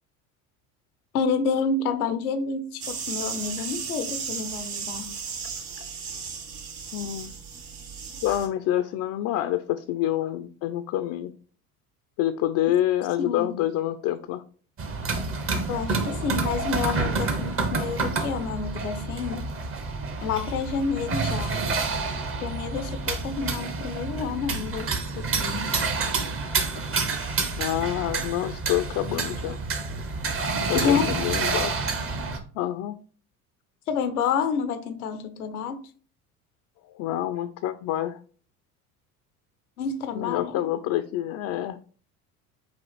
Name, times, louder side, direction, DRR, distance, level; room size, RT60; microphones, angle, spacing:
voice 1, 1.1-5.1 13.3-13.5 15.7-19.4 20.2-21.7 22.4-24.9 25.2-25.7 29.9-30.0 30.7-31.1 33.9-35.8 39.8-40.6, left 5 dB, 85° left, 0.7 m, -29 dB
sound 1, 2.8-8.5, right 6 dB, 60° right, 1.5 m, -35 dB
voice 2, 6.9-7.3 8.2-11.3 12.2-14.4 27.6-29.6 30.6-31.7 32.5-33.0 36.9-38.2 40.1-41.8, left 12 dB, 45° left, 0.4 m, -27 dB
sound 2, 14.8-32.4, right 4 dB, 30° right, 0.8 m, -28 dB
5.8 x 2.4 x 3.2 m
hypercardioid pair, 70°, 43 cm